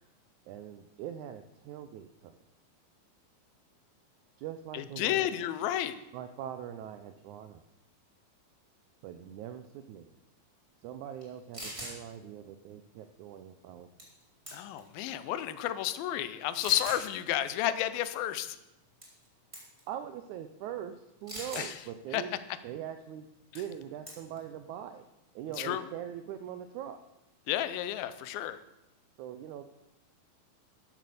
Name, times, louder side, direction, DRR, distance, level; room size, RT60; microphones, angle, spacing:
voice 1, 0.4-2.4 4.4-5.3 6.1-7.6 9.0-10.2 10.8-13.9 19.9-22.3 22.6-23.3 23.5-25.0 25.3-27.0 29.2-29.6, right 10 dB, 85° right, 9 dB, 1.7 m, -42 dB
voice 2, 4.7-6.0 14.5-18.6 21.6-21.7 22.1-22.2 25.6-25.8 27.5-28.6, left 12 dB, 85° left, 13 dB, 2.5 m, -31 dB
sound 1, 11.2-11.3 11.5-12.0 14.0-14.2 14.5-14.9 15.6-15.7 16.6-17.1 19.0-19.3 19.5-19.8 21.3-21.7 23.6-23.8 24.1-24.4, equal, 10° right, 3.2 m, -41 dB
12.5 x 7.5 x 6.9 m, 0.95 s
omnidirectional pair, 4.1 m